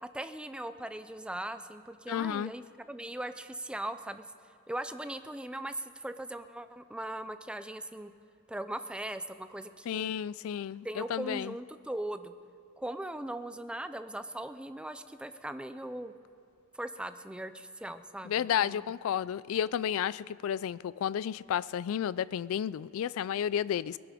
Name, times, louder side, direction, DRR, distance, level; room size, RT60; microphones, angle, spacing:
voice 1, 0.0-2.6 2.9-4.2 4.7-8.1 8.5-10.1 10.8-12.3 12.8-16.1 16.7-18.9, right 1 dB, 5° right, 10 dB, 0.4 m, -39 dB
voice 2, 2.1-2.5 9.9-11.5 18.2-24.0, left 9 dB, 70° left, 20 dB, 0.3 m, -32 dB
20.5 x 11.5 x 5.0 m, 2.5 s
head